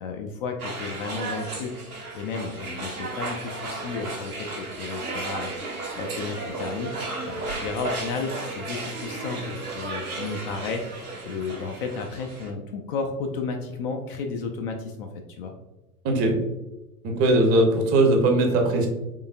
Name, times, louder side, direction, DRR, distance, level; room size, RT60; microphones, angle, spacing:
voice 1, 0.0-1.7 2.1-5.5 5.9-7.0 7.3-15.1 15.4-15.5, left 4 dB, 40° left, 3 dB, 0.4 m, -33 dB
sound 1, 0.6-12.5, right 2 dB, 75° right, 1.0 m, -34 dB
voice 2, 16.0-16.4 17.0-18.9, right 2 dB, 30° right, 2 dB, 0.7 m, -20 dB
3.7 x 3.4 x 2.4 m, 1.0 s
figure-of-eight pair, 85°, 44 cm